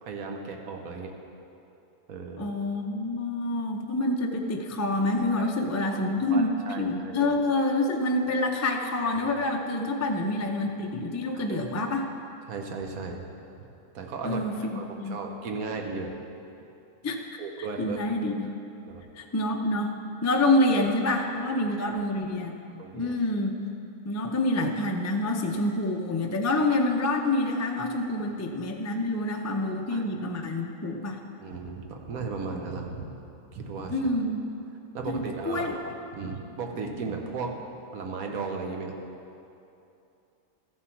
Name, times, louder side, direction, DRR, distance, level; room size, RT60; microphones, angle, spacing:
voice 1, 0.0-1.1 2.1-2.5 5.4-5.5 5.8-6.0 6.3-7.3 9.1-9.4 11.3-11.4 12.5-13.2 13.9-14.4 14.7-16.1 17.4-18.0 18.9-19.0 21.4-21.9 22.8-23.1 28.3-28.4 29.9-30.0 31.4-33.2 33.5-34.0 34.9-35.8 36.1-37.6 37.9-38.9, right 4 dB, 75° right, 3 dB, 1.4 m, -36 dB
voice 2, 2.4-12.1 14.2-14.7 15.0-15.2 17.0-17.4 17.8-18.6 19.2-19.9 20.2-22.5 22.9-23.6 24.0-31.2 33.9-34.4 35.1-35.7, left 2 dB, 25° left, 2 dB, 0.3 m, -27 dB
14.5 x 7.6 x 4.6 m, 2.7 s
omnidirectional pair, 1.5 m